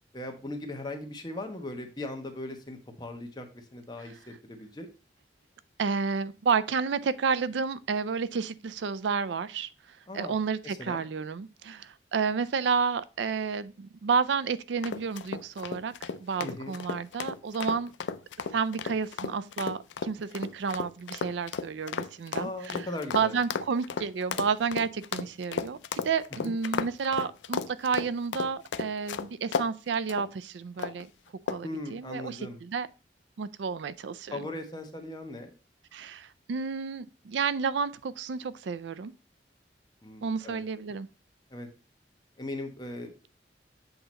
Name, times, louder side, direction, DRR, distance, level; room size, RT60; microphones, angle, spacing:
voice 1, 0.1-4.9 10.1-10.4 10.6-11.1 16.4-16.8 22.4-23.4 26.4-26.5 31.6-32.6 34.3-35.5 40.0-40.6 41.5-41.7 42.4-43.3, left 1 dB, 25° left, 1.0 m, -39 dB
voice 2, 5.8-9.7 10.1-17.9 18.5-22.9 23.1-25.8 26.0-31.1 31.5-32.9 33.4-34.4 35.9-39.1 40.2-41.1, right 5 dB, 80° right, 0.4 m, -31 dB
sound 1, 14.8-29.7 30.1-30.3 30.8-31.1 31.5-31.8, left 6 dB, 90° left, 0.4 m, -34 dB
7.8 x 2.9 x 5.0 m
head